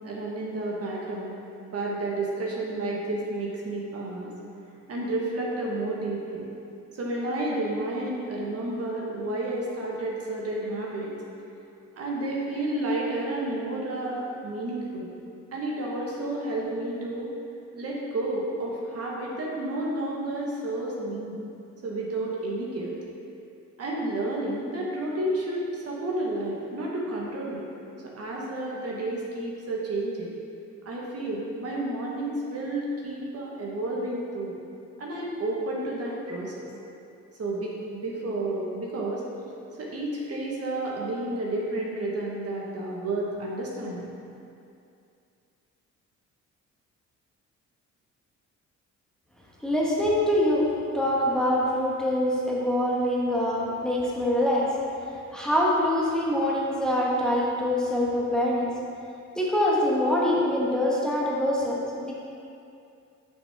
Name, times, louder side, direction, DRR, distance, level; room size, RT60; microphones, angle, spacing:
voice 1, 0.0-1.4 1.7-4.3 4.9-6.5 6.9-11.1 12.0-15.1 15.5-17.3 17.7-21.4 21.8-22.9 23.8-27.6 28.0-30.3 30.8-34.5 35.0-36.7 37.4-39.2 39.8-44.1, right 2 dB, 55° right, -3 dB, 1.3 m, -31 dB
voice 2, 49.6-50.7 50.9-54.7 55.3-58.7 59.4-62.1, left 1 dB, ahead, -5 dB, 1.2 m, -24 dB
6.2 x 6.0 x 3.5 m, 2.5 s
cardioid pair, 90°, 30 cm